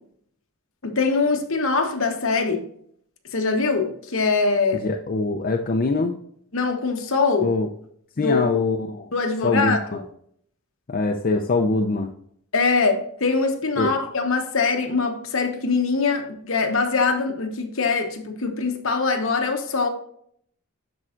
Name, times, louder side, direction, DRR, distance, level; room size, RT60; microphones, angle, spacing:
voice 1, 0.8-2.6 3.3-4.8 6.5-7.5 8.2-8.4 9.1-10.0 12.5-19.9, left 4 dB, 65° left, 1.1 m, -23 dB
voice 2, 4.8-6.2 7.4-7.7 8.2-9.1 9.4-10.0 10.9-12.1 13.8-13.9, left 3 dB, 40° left, 0.5 m, -23 dB
12.0 x 4.4 x 2.5 m
head